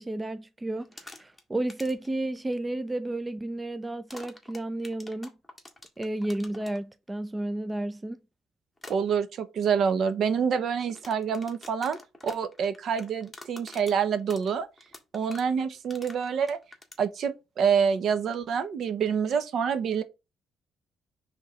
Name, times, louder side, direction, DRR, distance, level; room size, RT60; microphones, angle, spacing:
voice 1, 0.0-5.3 6.0-8.2, right 1 dB, 15° right, 0.5 m, -32 dB
sound 1, 0.8-1.4 1.7-2.1 4.1-6.8 8.8-8.9 10.8-17.0, left 2 dB, 10° left, 1.7 m, -46 dB
voice 2, 8.9-12.0 12.2-14.7 15.1-16.6 17.0-20.0, right 7 dB, 65° right, 0.9 m, -27 dB
4.9 x 3.6 x 5.6 m
cardioid pair, 90°, 0 cm